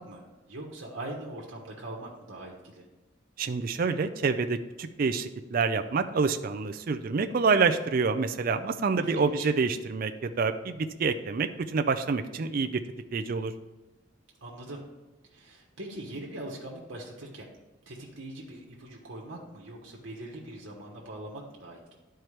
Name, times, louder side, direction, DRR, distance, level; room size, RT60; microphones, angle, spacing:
voice 1, 0.0-2.9 9.0-9.5 14.4-14.8 15.3-17.5 17.9-21.9, right 1 dB, 70° right, -2 dB, 1.2 m, -42 dB
voice 2, 3.4-12.8 13.1-13.5, right 4 dB, 45° right, 8 dB, 0.4 m, -27 dB
11.0 x 4.5 x 3.3 m, 1.1 s
head